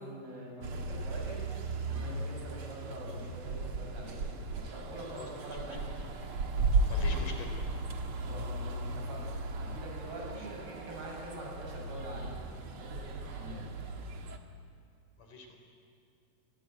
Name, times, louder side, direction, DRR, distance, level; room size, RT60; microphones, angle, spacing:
voice 1, 0.0-1.4 1.9-4.2 4.5-5.8 8.2-12.4 12.8-13.6, right 1 dB, 80° right, -1 dB, 9.4 m, -44 dB
sound 1, 0.6-14.4, right 3 dB, 50° right, 1.9 m, -36 dB
voice 2, 5.1-5.8 6.9-7.6 10.4-10.5 15.2-15.6, left 3 dB, 55° left, 3 dB, 5.3 m, -44 dB
28.5 x 22.5 x 9.2 m, 2.4 s
omnidirectional pair, 4.4 m